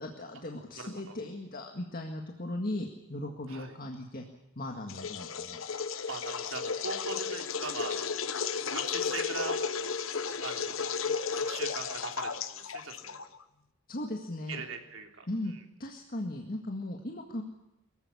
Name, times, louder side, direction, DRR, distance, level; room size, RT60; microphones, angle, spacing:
voice 1, 0.0-4.2 4.6-5.6 13.9-14.6 15.3-15.5 15.8-17.4, left 1 dB, 45° left, 3 dB, 1.9 m, -37 dB
voice 2, 0.8-1.2 3.5-3.8 6.1-8.0 8.6-9.6 10.4-10.8 11.3-13.2 14.5-15.6, right 4 dB, 75° right, 3 dB, 3.4 m, -41 dB
sound 1, 4.9-13.4, left 6 dB, 75° left, 1.1 m, -34 dB
23.5 x 15.0 x 9.8 m, 0.95 s
head